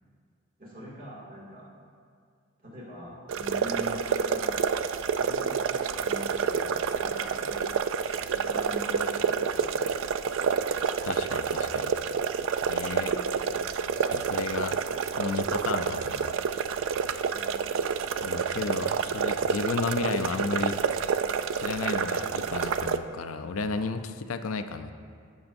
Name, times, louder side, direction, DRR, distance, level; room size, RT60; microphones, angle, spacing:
voice 1, 0.6-1.7 2.6-4.6 5.2-7.7 8.3-9.8 17.3-17.6, equal, 40° right, -6 dB, 2.2 m, -43 dB
sound 1, 3.3-23.0, right 6 dB, 70° right, 0.3 m, -28 dB
voice 2, 11.0-11.9 12.6-13.2 14.0-14.9 15.2-16.4 18.2-20.8 21.5-24.9, left 4 dB, 85° left, 9 dB, 0.5 m, -33 dB
15.0 x 6.3 x 2.6 m, 2.2 s
head